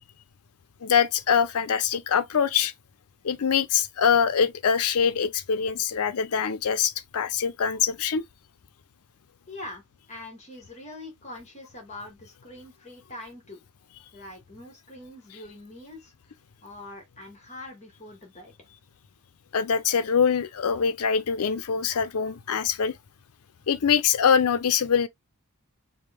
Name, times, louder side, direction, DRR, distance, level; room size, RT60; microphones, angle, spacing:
voice 1, 0.8-2.7 3.2-8.2 19.5-23.0 23.7-25.1, left 7 dB, 75° left, 0.5 m, -24 dB
voice 2, 9.5-9.8 10.1-13.6 14.1-16.1 16.6-18.5, left 1 dB, 30° left, 1.4 m, -43 dB
4.9 x 2.1 x 3.4 m
head